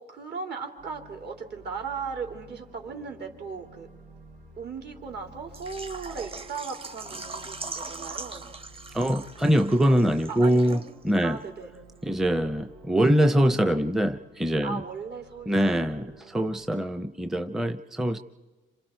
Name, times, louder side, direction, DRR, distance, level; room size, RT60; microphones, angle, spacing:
voice 1, 0.0-3.9 4.6-8.4 10.3-10.8 11.2-11.7 14.6-15.8, right 5 dB, 55° right, 2 dB, 3.7 m, -37 dB
sound 1, 0.8-16.7, right 2 dB, 90° right, 5.2 m, -52 dB
Water / Liquid, 5.5-11.2 11.4-11.5 12.0-12.1, right 3 dB, 30° right, 1.3 m, -41 dB
voice 2, 8.9-11.4 12.0-14.8 15.5-18.2, equal, ahead, 8 dB, 0.7 m, -23 dB
27.0 x 27.0 x 4.6 m, 1.2 s
cardioid pair, 90°, 20 cm